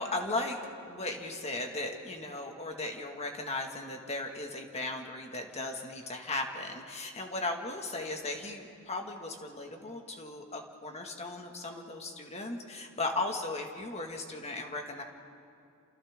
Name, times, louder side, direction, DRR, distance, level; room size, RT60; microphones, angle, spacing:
voice 1, 0.0-15.0, left 2 dB, 30° left, 2 dB, 2.0 m, -37 dB
30.0 x 28.0 x 3.7 m, 2.6 s
head